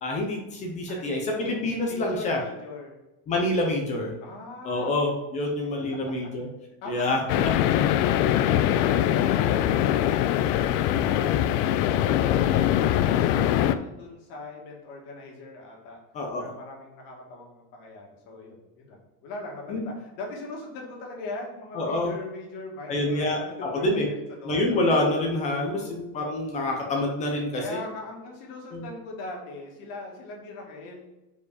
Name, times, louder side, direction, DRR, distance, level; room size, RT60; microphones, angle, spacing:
voice 1, 0.0-2.4 3.3-4.1 4.6-6.5 6.9-7.2 16.1-16.5 19.7-19.9 21.7-22.1 22.9-24.1 24.4-27.8 28.7-28.8, left 1 dB, 15° left, 1 dB, 0.3 m, -27 dB
voice 2, 0.9-1.6 1.9-3.0 4.2-5.0 5.9-6.1 6.8-10.5 10.9-16.0 16.4-24.8 25.4-25.9 27.6-31.0, left 2 dB, 55° left, -1 dB, 1.9 m, -41 dB
sound 1, 7.3-13.8, left 11 dB, 75° left, 0.5 m, -22 dB
4.9 x 4.6 x 4.7 m, 0.99 s
cardioid pair, 175°, 47 cm